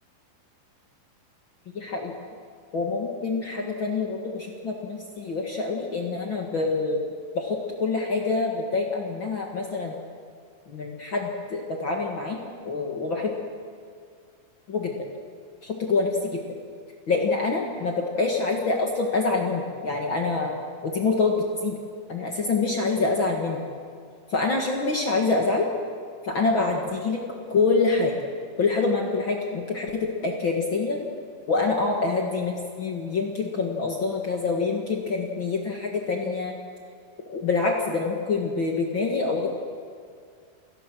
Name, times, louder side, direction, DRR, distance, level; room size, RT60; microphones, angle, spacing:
voice 1, 1.7-2.1 2.7-7.0 7.3-9.9 10.7-12.4 12.6-13.3 14.7-15.1 15.6-16.4 17.1-20.6 20.8-21.7 22.1-23.6 24.3-25.7 26.2-27.2 27.5-28.1 28.6-31.0 31.5-36.6 37.3-39.5, left 3 dB, 45° left, 1 dB, 1.8 m, -26 dB
29.0 x 18.5 x 6.2 m, 2.2 s
omnidirectional pair, 4.3 m